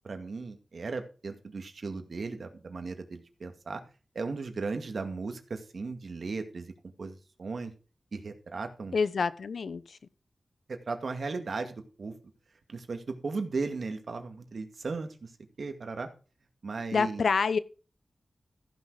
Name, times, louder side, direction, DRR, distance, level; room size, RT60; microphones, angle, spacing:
voice 1, 0.0-3.8 4.2-6.7 7.0-7.7 8.1-8.9 10.7-12.1 12.7-15.3 15.6-16.1 16.6-17.2, right 4 dB, 70° right, 2.1 m, -36 dB
voice 2, 8.9-10.0 16.9-17.6, left 5 dB, 85° left, 0.7 m, -27 dB
15.0 x 6.4 x 4.8 m
wide cardioid pair, 85°, 0 cm